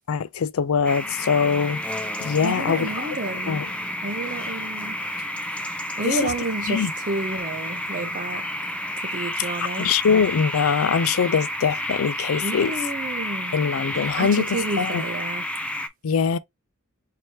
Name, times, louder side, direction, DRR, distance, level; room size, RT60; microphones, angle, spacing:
voice 1, 0.1-1.8 2.2-3.1 3.5-3.7 6.0-6.2 6.7-6.9 9.8-12.7 13.5-14.4 14.8-15.0 16.0-16.4, left 6 dB, 80° left, 0.4 m, -22 dB
sound 1, 0.8-15.9, left 1 dB, 5° left, 0.4 m, -30 dB
voice 2, 2.4-5.0 5.5-8.4 9.0-9.9 12.4-13.6 14.0-15.5, right 2 dB, 40° right, 0.8 m, -31 dB
3.0 x 2.9 x 4.4 m
head